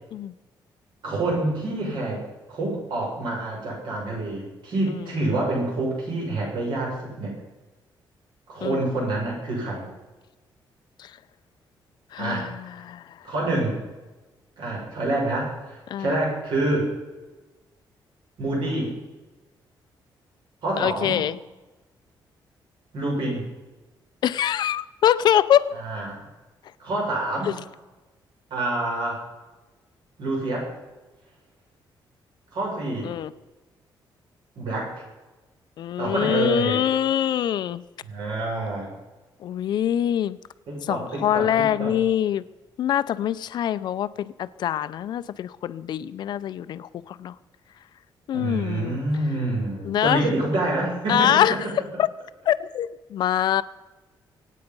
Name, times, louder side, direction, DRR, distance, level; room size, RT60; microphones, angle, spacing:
voice 1, 1.0-2.2 2.5-7.4 8.5-9.8 12.2-12.5 13.2-13.7 14.6-16.9 18.4-18.9 20.6-21.2 22.9-23.4 25.8-26.2 26.8-27.6 28.5-29.2 30.2-30.7 32.5-33.1 34.5-35.0 36.0-36.8 38.0-38.9 40.7-42.0 48.3-51.6, right 2 dB, 70° right, -2 dB, 6.7 m, -27 dB
voice 2, 12.1-13.1 15.9-16.2 20.8-21.4 24.2-25.7 27.5-27.6 33.0-33.3 35.8-37.8 39.4-40.4 40.8-42.4 42.8-47.3 48.3-49.0 49.8-50.3 51.1-52.1 52.5-53.6, left 10 dB, 60° left, 15 dB, 0.6 m, -24 dB
24.0 x 9.3 x 5.4 m, 1.1 s
cardioid pair, 175°, 8 cm